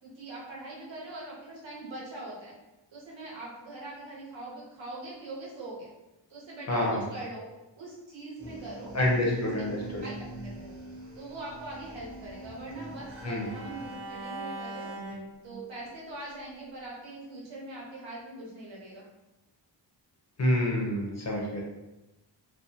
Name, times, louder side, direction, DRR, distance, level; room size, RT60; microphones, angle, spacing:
voice 1, 0.0-2.5 2.9-5.9 6.3-7.5 7.8-8.9 9.6-9.7 10.0-10.1 10.4-10.8 11.1-14.9 15.4-19.0, right 2 dB, 80° right, -5 dB, 1.0 m, -42 dB
voice 2, 6.7-7.0 8.9-10.0 13.2-13.5 20.4-21.6, left 1 dB, 35° left, -2 dB, 0.5 m, -27 dB
sound 1, 8.4-14.0, right 1 dB, 30° right, 0.8 m, -44 dB
Bowed string instrument, 11.7-15.9, right 2 dB, 50° right, 0.5 m, -42 dB
2.4 x 2.2 x 2.6 m, 0.98 s
wide cardioid pair, 170°, 45 cm